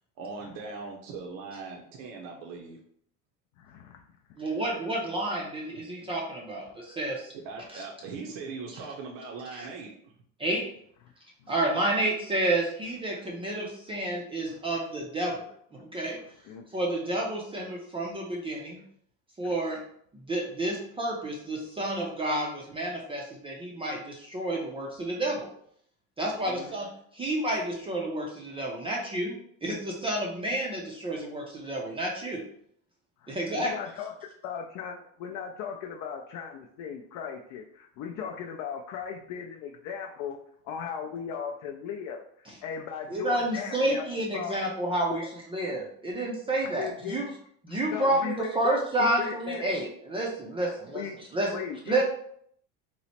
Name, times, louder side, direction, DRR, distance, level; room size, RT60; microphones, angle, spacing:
voice 1, 0.2-2.8 7.4-9.9, right 4 dB, 65° right, 0 dB, 0.7 m, -40 dB
voice 2, 3.6-4.0 11.4-11.5 14.5-14.6 16.2-16.6 19.4-19.5 26.4-26.9 33.2-40.4 40.6-44.0 44.3-44.5 45.1-45.3 46.6-47.2 47.7-49.6 50.6-51.2 51.5-52.0, left 7 dB, 55° left, 2 dB, 0.4 m, -38 dB
voice 3, 4.4-7.3 9.6-9.7 10.4-10.7 11.5-15.5 15.8-16.2 16.7-18.8 19.4-19.8 20.3-25.5 26.2-32.4 33.3-33.7 43.1-45.2 45.5-47.3 47.6-51.0 51.3-51.5 51.9-52.0, right 1 dB, 15° right, -2 dB, 0.4 m, -30 dB
3.0 x 2.0 x 4.0 m, 0.65 s
cardioid pair, 135°, 36 cm